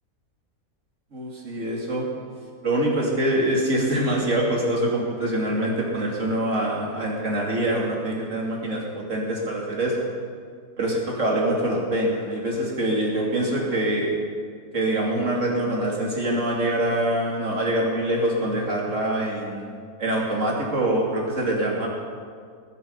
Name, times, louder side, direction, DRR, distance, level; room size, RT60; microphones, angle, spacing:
voice 1, 1.1-2.1 2.6-10.1 10.8-14.1 14.7-19.7 20.0-21.9, right 1 dB, 50° right, -2 dB, 2.8 m, -24 dB
21.0 x 8.2 x 5.4 m, 2.1 s
omnidirectional pair, 1.7 m